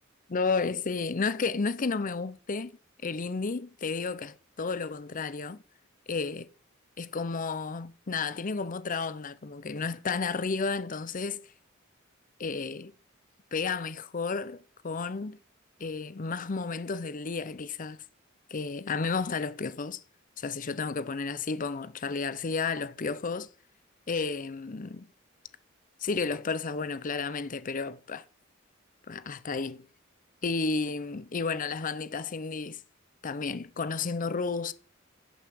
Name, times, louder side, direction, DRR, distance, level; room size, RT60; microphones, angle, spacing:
voice 1, 0.3-2.7 3.0-5.6 6.1-6.5 7.0-11.4 12.4-12.9 13.5-15.4 15.8-18.0 18.5-20.0 20.4-23.5 24.1-25.1 26.0-28.2 29.1-29.9 30.4-32.8 33.2-34.7, left 4 dB, 40° left, 0.6 m, -32 dB
11.0 x 5.6 x 7.7 m
head